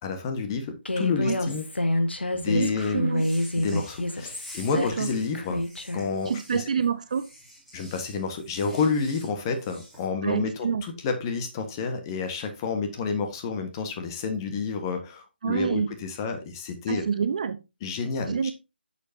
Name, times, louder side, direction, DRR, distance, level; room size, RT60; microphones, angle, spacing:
voice 1, 0.0-1.7 2.3-3.0 3.6-5.6 5.9-6.6 7.7-17.0 17.8-18.4, left 5 dB, 20° left, 1.5 m, -29 dB
Human voice, 0.8-6.1, left 1 dB, 75° left, 1.6 m, -28 dB
voice 2, 2.5-3.3 4.7-5.1 6.3-7.3 10.2-10.8 15.4-15.9 16.9-17.6 18.3-18.5, right 6 dB, 40° right, 0.7 m, -27 dB
sound 1, 3.1-10.0, equal, 5° left, 2.9 m, -49 dB
10.0 x 7.1 x 2.8 m
figure-of-eight pair, 150°, 6 cm